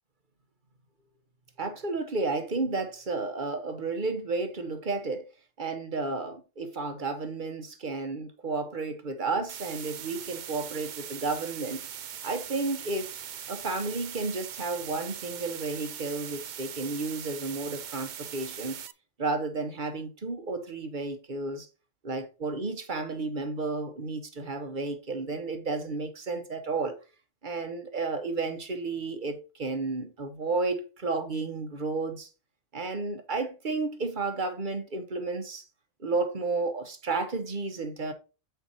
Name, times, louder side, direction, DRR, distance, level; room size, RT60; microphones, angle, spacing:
voice 1, 1.6-5.3 5.6-11.9 12.2-13.1 13.5-18.8 19.2-21.7 22.0-27.0 27.4-32.3 32.7-35.6 36.0-38.1, right 3 dB, 40° right, 1.1 m, -32 dB
sound 1, 9.5-18.9, right 9 dB, 60° right, 0.5 m, -41 dB
7.9 x 4.6 x 4.1 m
omnidirectional pair, 1.3 m